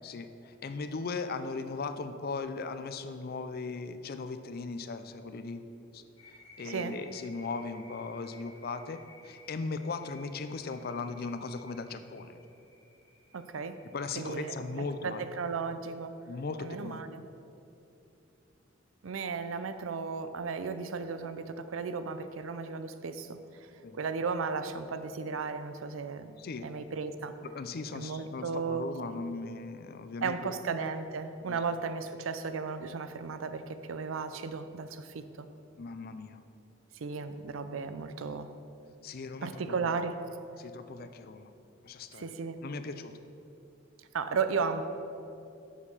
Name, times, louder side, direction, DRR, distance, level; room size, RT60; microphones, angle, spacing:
voice 1, 0.0-5.6 5.9-12.4 13.9-15.2 16.3-17.0 23.8-24.0 26.4-26.7 27.4-30.6 31.5-31.6 35.8-36.4 39.0-39.9 40.6-41.5 41.8-42.3 42.6-43.1, left 4 dB, 50° left, 10 dB, 0.4 m, -38 dB
sound 1, 6.2-15.2, left 2 dB, 70° left, 1.3 m, -57 dB
voice 2, 6.6-7.0 13.3-13.8 14.2-16.1 16.6-17.2 19.0-26.3 26.6-27.4 27.9-28.9 30.2-35.5 36.9-38.5 39.4-40.3 42.1-42.6 44.1-44.8, right 5 dB, 80° right, 10 dB, 0.5 m, -35 dB
7.2 x 6.6 x 5.5 m, 2.7 s
head